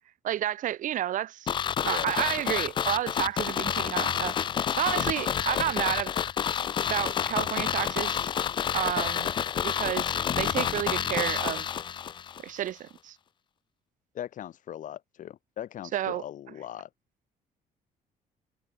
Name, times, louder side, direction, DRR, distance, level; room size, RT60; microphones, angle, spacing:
voice 1, 0.2-1.5 1.8-6.1 6.9-8.3 8.7-9.3 9.6-11.7 12.4-13.2 15.9-16.2, right 12 dB, 60° right, 1.5 m, -31 dB
sound 1, 1.5-12.4 12.7-12.8, left 8 dB, 35° left, 0.3 m, -29 dB
voice 2, 14.1-16.9, left 11 dB, 60° left, 4.4 m, -39 dB
cardioid pair, 125°, 15 cm